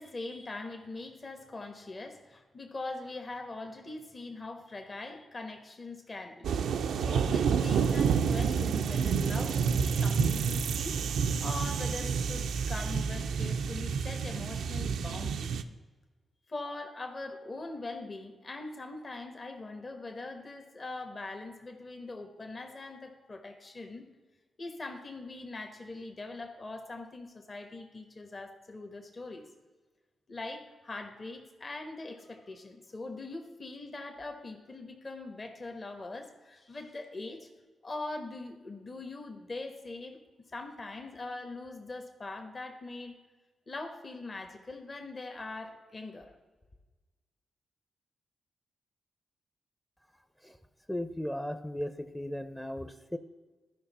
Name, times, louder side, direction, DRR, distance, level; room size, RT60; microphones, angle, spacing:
voice 1, 0.0-6.5 7.0-11.0 11.4-15.5 16.5-24.1 24.6-29.4 30.3-37.5 37.8-43.2 43.7-46.3, left 2 dB, 40° left, 5 dB, 1.2 m, -42 dB
sound 1, 6.4-15.6, right 6 dB, 80° right, 0.4 m, -29 dB
voice 2, 50.9-53.2, left 1 dB, 10° left, 10 dB, 0.6 m, -36 dB
12.5 x 5.3 x 4.1 m, 1.3 s
supercardioid pair, 45°, 0 cm